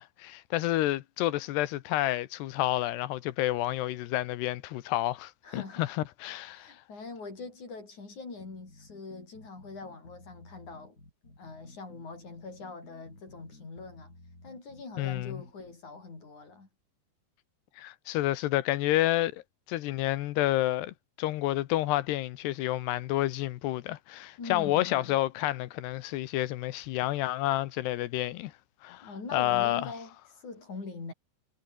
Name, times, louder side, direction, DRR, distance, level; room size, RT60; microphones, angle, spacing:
voice 1, 0.0-6.8 15.0-15.4 17.8-19.4 19.7-28.5 28.8-29.9, left 15 dB, 75° left, 3.0 m, -29 dB
voice 2, 5.4-5.9 6.5-11.0 11.2-14.2 14.4-16.7 24.4-25.2 29.0-31.1, left 3 dB, 40° left, 8.2 m, -43 dB
sound 1, 8.4-15.8, left 2 dB, 20° left, 7.3 m, -54 dB
omnidirectional pair, 5.1 m